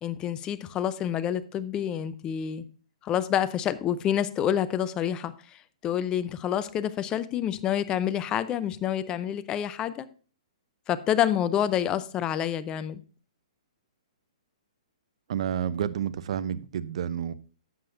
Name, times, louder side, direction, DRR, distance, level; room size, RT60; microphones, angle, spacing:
voice 1, 0.0-2.7 3.0-10.1 10.9-13.0, left 10 dB, 20° left, 0.6 m, -28 dB
voice 2, 15.3-17.3, right 9 dB, 60° right, 0.6 m, -30 dB
11.0 x 7.7 x 2.6 m
hypercardioid pair, 135°, 4 cm